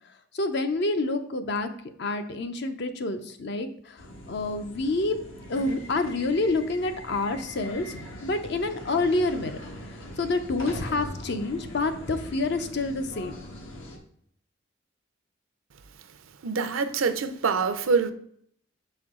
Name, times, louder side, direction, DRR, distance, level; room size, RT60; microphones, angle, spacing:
voice 1, 0.3-1.7 2.0-5.2 5.5-9.6 9.9-13.3, left 2 dB, 55° left, 0.6 m, -28 dB
sound 1, 4.0-14.0, left 1 dB, 75° left, 1.3 m, -41 dB
voice 2, 16.4-18.1, right 5 dB, 80° right, 0.6 m, -25 dB
6.8 x 4.4 x 3.7 m
head